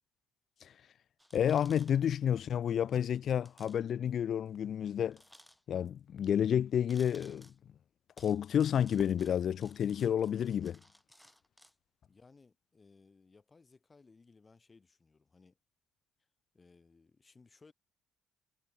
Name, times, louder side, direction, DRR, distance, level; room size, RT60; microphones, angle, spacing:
sound 1, 1.2-2.4 2.6-2.7 3.4-3.8 4.1-4.2 5.1-5.9 6.9-7.6 8.2-11.7, equal, 5° left, 6.4 m, -59 dB
voice 1, 1.3-5.2 5.7-7.5 8.2-10.8, left 9 dB, 55° left, 0.6 m, -30 dB
Fireworks, 10.9-11.3, right 4 dB, 30° right, 3.1 m, -56 dB
voice 2, 12.1-15.6 16.5-17.7, left 4 dB, 30° left, 7.8 m, -62 dB
hypercardioid pair, 60°, 0 cm